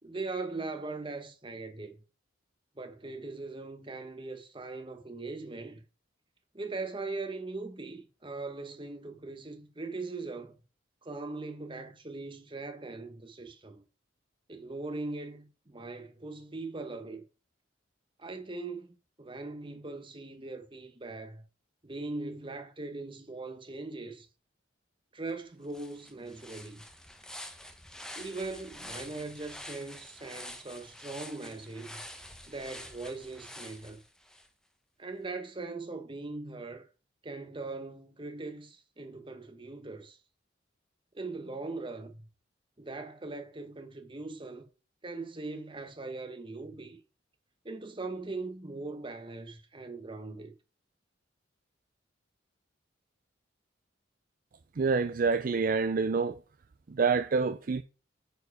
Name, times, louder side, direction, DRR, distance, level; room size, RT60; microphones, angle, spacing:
voice 1, 0.0-2.0 2.7-5.8 6.5-10.6 11.0-13.8 14.5-17.2 18.2-21.4 21.8-24.3 25.1-26.8 28.1-32.0 32.5-34.0 35.0-36.9 37.2-40.2 41.1-42.2 42.8-44.6 45.0-47.0 47.6-50.5, right 3 dB, 25° right, 1.2 m, -40 dB
sound 1, 25.3-25.4 25.7-34.5, left 1 dB, 5° left, 0.9 m, -47 dB
voice 2, 54.8-56.4 56.9-57.8, right 4 dB, 45° right, 0.4 m, -27 dB
9.4 x 4.7 x 4.9 m
head